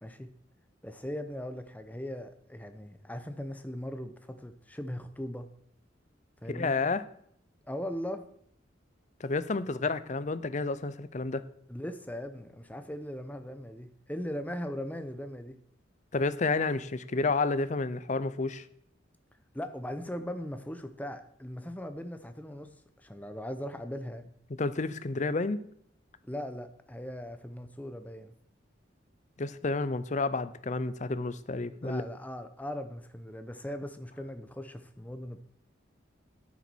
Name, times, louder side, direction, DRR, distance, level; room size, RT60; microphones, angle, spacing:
voice 1, 0.0-0.3 0.8-5.5 6.4-6.7 7.7-8.2 11.7-15.6 19.5-24.3 26.2-28.3 31.8-35.4, equal, 10° left, 8 dB, 0.8 m, -39 dB
voice 2, 6.5-7.0 9.2-11.4 16.1-18.7 24.6-25.6 29.4-32.0, left 3 dB, 40° left, 13 dB, 0.6 m, -30 dB
10.0 x 8.4 x 6.2 m, 0.66 s
head